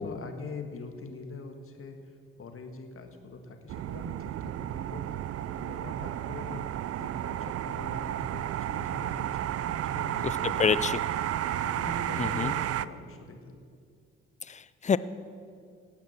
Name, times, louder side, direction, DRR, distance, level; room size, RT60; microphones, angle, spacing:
voice 1, 0.0-2.0 2.4-5.0 5.4-6.7 7.0-10.8 11.6-13.6, left 3 dB, 45° left, 5 dB, 1.8 m, -43 dB
sound 1, 3.7-12.9, right 12 dB, 55° right, 0.4 m, -32 dB
voice 2, 10.2-11.0 12.2-12.5 14.5-15.0, left 6 dB, 25° left, 16 dB, 0.5 m, -28 dB
17.0 x 5.9 x 7.2 m, 2.2 s
hypercardioid pair, 50°, 30 cm